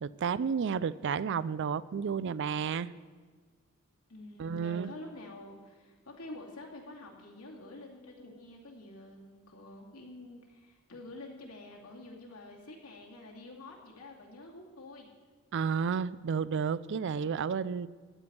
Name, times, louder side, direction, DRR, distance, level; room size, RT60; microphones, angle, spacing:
voice 1, 0.0-2.9 4.4-4.9 15.5-17.9, right 6 dB, 55° right, 18 dB, 0.4 m, -31 dB
voice 2, 4.1-15.1, left 2 dB, 90° left, -1 dB, 2.5 m, -48 dB
14.5 x 5.3 x 9.6 m, 1.5 s
head